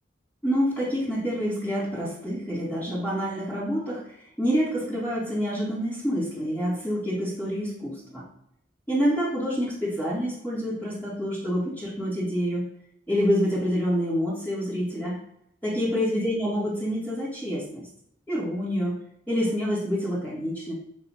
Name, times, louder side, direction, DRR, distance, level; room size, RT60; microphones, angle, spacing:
voice 1, 0.4-8.2 8.9-12.6 13.1-15.2 15.6-17.9 18.3-19.0 19.3-20.7, equal, 10° left, -9 dB, 2.8 m, -27 dB
8.6 x 7.9 x 2.8 m, 0.74 s
head